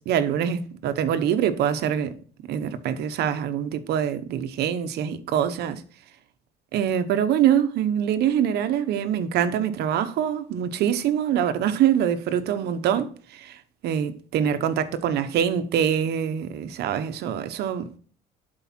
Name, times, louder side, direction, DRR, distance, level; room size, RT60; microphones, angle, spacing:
voice 1, 0.1-2.1 2.5-5.8 6.7-13.6 13.8-18.0, right 9 dB, 75° right, 1.0 m, -24 dB
11.5 x 4.8 x 4.3 m
cardioid pair, 110°, 17 cm